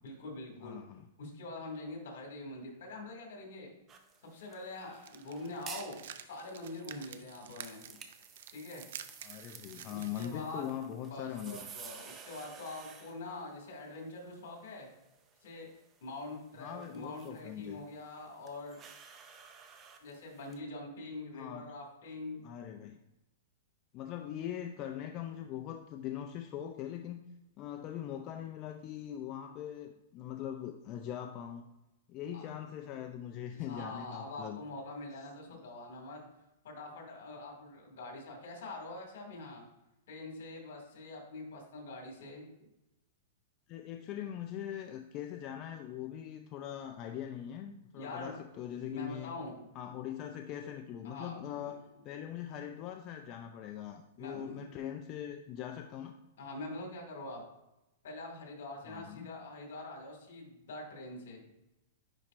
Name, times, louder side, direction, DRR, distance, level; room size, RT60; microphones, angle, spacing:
voice 1, 0.0-0.8 1.2-3.7 4.3-8.0 8.5-8.9 9.9-10.6 11.0-14.9 15.4-15.7 16.0-18.8 20.0-22.4 32.3-32.5 33.5-36.2 36.6-39.6 40.1-42.5 47.9-48.4 48.9-49.7 50.2-50.3 51.0-51.7 52.1-52.2 54.2-54.7 56.4-57.4 58.0-61.5, left 2 dB, 70° left, 1 dB, 2.3 m, -44 dB
voice 2, 0.6-1.1 9.2-11.7 16.6-17.8 21.3-21.7 22.4-23.0 23.9-27.2 27.6-31.6 32.1-34.6 35.5-35.6 43.7-49.3 49.7-56.1 58.9-59.3, left 10 dB, 30° left, 5 dB, 0.4 m, -41 dB
sound 1, 3.9-20.6, right 6 dB, 20° right, 0.6 m, -54 dB
sound 2, 4.9-10.3, right 9 dB, 65° right, 0.5 m, -49 dB
9.8 x 4.1 x 2.6 m, 0.93 s
hypercardioid pair, 155°, 0 cm